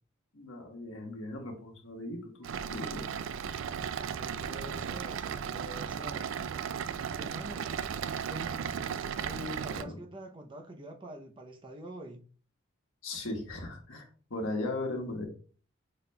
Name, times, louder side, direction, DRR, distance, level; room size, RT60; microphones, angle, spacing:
voice 1, 0.3-3.0 9.7-9.9 13.0-15.3, left 2 dB, 85° left, 1.2 m, -38 dB
sound 1, 2.4-9.8, right 7 dB, 75° right, 0.3 m, -36 dB
voice 2, 4.0-6.3 7.1-7.7 8.2-8.7 9.2-12.2, equal, 25° right, 0.6 m, -45 dB
5.4 x 4.0 x 2.2 m
head